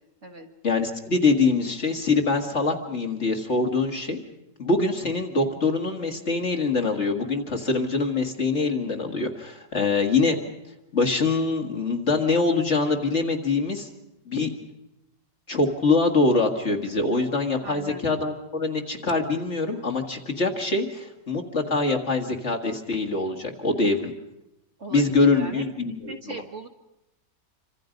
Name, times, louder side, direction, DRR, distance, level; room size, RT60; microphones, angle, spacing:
voice 1, 0.6-4.2 4.6-10.4 10.9-13.9 14.3-14.5 15.5-24.1 24.9-26.4, left 3 dB, 40° left, 4 dB, 2.2 m, -24 dB
voice 2, 17.6-18.1 24.8-26.7, right 2 dB, 45° right, 5 dB, 1.8 m, -39 dB
27.0 x 25.0 x 5.2 m, 0.88 s
omnidirectional pair, 1.9 m